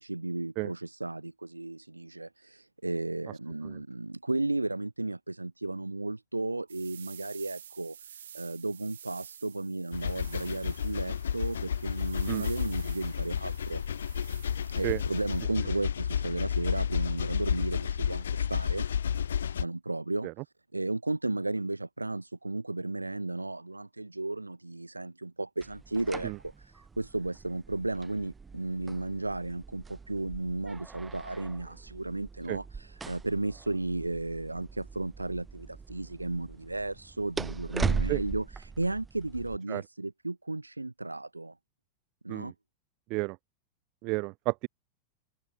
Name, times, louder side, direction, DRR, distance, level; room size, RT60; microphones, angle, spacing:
voice 1, 0.0-13.8 14.7-18.9 19.6-20.3 20.7-41.5 42.2-42.5, right 2 dB, 85° right, 1.0 m, -34 dB
sound 1, 6.7-15.5, right 9 dB, 65° right, 1.2 m, -50 dB
sound 2, 9.9-19.6, left 8 dB, 65° left, 1.1 m, -31 dB
sound 3, 25.6-39.6, right 5 dB, 15° right, 1.5 m, -39 dB
voice 2, 44.0-44.7, right 26 dB, 40° right, 0.6 m, -32 dB
figure-of-eight pair, 90°, 0 cm